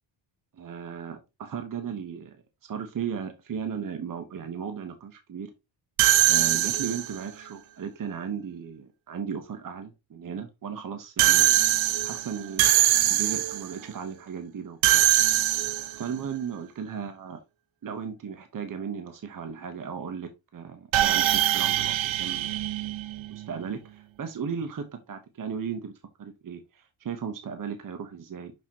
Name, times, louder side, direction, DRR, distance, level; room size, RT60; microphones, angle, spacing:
voice 1, 0.5-5.5 6.3-11.6 12.0-12.7 13.0-15.0 16.0-17.4 17.8-22.6 23.3-25.9 26.2-28.5, right 7 dB, 45° right, 7 dB, 1.2 m, -36 dB
sound 1, 6.0-7.3 11.2-13.7 14.8-16.1 20.9-23.5, right 14 dB, 70° right, 0.7 m, -23 dB
6.5 x 6.1 x 2.9 m, 0.24 s
cardioid pair, 95°, 47 cm